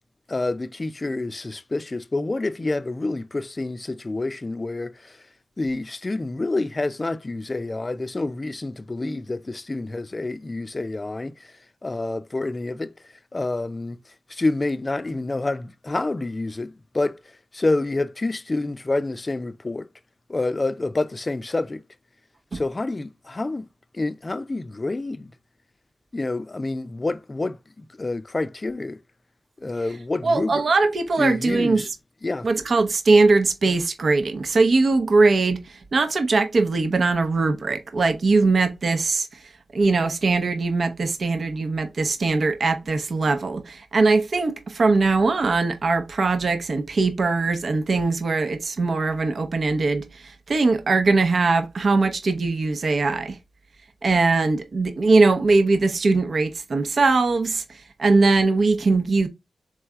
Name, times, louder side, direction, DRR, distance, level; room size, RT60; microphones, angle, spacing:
voice 1, 0.3-5.2 5.6-11.5 11.8-12.9 13.3-14.0 14.3-17.2 17.5-19.9 20.3-21.8 22.5-23.7 23.9-25.3 26.1-29.0 29.6-30.7 31.2-31.9 32.2-32.5, left 2 dB, 40° left, 0.5 m, -28 dB
voice 2, 30.2-31.8 32.4-39.3 39.7-50.1 50.5-53.4 54.0-57.6 58.0-59.3, right 3 dB, 65° right, 0.7 m, -21 dB
3.7 x 3.2 x 3.5 m
cardioid pair, 40°, 0 cm